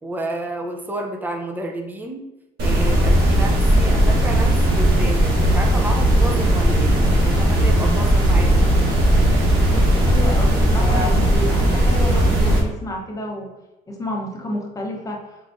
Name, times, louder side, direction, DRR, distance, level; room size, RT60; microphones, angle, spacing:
voice 1, 0.0-2.3 2.6-8.7 10.8-11.2, right 1 dB, 10° right, 2 dB, 0.6 m, -30 dB
sound 1, 2.6-12.6, right 1 dB, 80° right, 1.3 m, -17 dB
voice 2, 9.7-13.5 13.9-15.3, left 1 dB, 20° left, 0 dB, 1.0 m, -30 dB
4.5 x 3.7 x 2.7 m, 1.0 s
cardioid pair, 110°, 17 cm